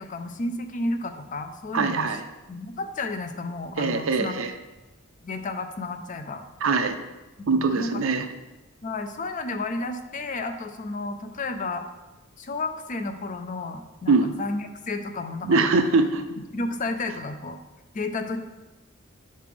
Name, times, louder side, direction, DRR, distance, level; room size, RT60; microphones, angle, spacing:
voice 1, 0.0-2.2 2.5-4.4 5.2-6.5 7.4-8.0 8.8-11.8 12.4-15.7 16.5-17.6 17.9-18.4, left 2 dB, 40° left, 8 dB, 0.5 m, -32 dB
voice 2, 1.7-2.2 3.8-4.5 6.6-7.0 7.5-8.3 14.1-14.3 15.4-16.2, right 4 dB, 65° right, 9 dB, 0.5 m, -22 dB
7.6 x 3.3 x 5.1 m, 1.1 s
head